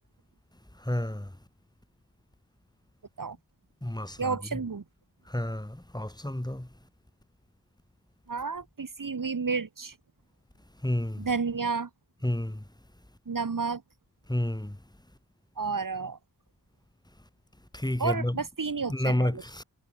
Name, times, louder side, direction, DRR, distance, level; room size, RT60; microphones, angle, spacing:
voice 1, 0.8-1.3 3.8-4.6 5.3-6.7 10.8-11.3 12.2-12.6 14.3-14.8 17.7-18.4 18.9-19.6, left 1 dB, 10° left, 6.8 m, -30 dB
voice 2, 4.2-4.8 8.3-9.9 11.2-11.9 13.3-13.8 15.6-16.2 18.0-19.4, right 5 dB, 50° right, 4.4 m, -31 dB
cardioid pair, 60°, 41 cm